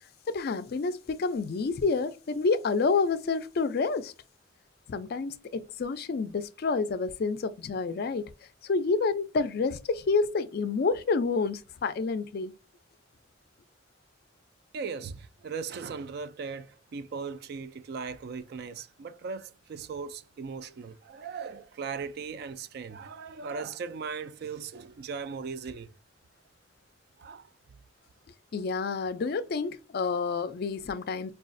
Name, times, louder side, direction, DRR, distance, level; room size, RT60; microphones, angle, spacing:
voice 1, 0.3-4.1 4.9-8.3 8.6-12.5 28.5-31.3, left 4 dB, 50° left, 0.3 m, -29 dB
voice 2, 14.7-25.9 27.2-27.5, right 5 dB, 55° right, 0.3 m, -38 dB
4.9 x 2.3 x 2.5 m
head